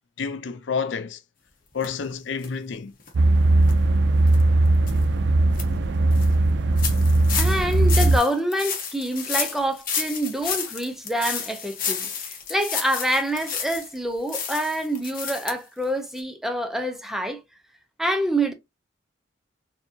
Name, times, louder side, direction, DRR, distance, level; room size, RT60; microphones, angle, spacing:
voice 1, 0.2-1.2 1.7-2.9, left 5 dB, 65° left, 0.5 m, -29 dB
sound 1, 1.8-1.9 2.4-2.5 3.0-3.1 3.6-3.7 4.3-4.4 4.9-5.0 5.3-5.6 6.1-6.3 6.8-14.0 14.3-15.5 15.8-15.9 16.2-16.3, left 7 dB, 45° left, 1.1 m, -31 dB
sound 2, 3.1-8.2, right 2 dB, 60° right, 0.4 m, -19 dB
voice 2, 7.3-17.4 18.0-18.5, right 1 dB, ahead, 0.5 m, -26 dB
4.5 x 2.8 x 2.7 m
head